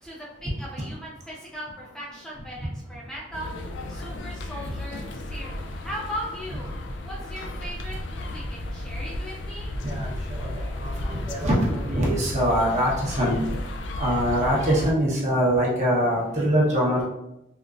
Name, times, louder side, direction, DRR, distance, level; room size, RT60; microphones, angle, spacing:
voice 1, 0.0-3.5 3.9-6.7 7.0-9.7, equal, 5° left, -6 dB, 0.4 m, -38 dB
sound 1, 3.3-14.9, left 1 dB, 80° left, 0.4 m, -34 dB
voice 2, 10.8-13.4 14.0-17.0, equal, 40° right, -5 dB, 0.9 m, -23 dB
3.6 x 2.5 x 2.5 m, 0.86 s
head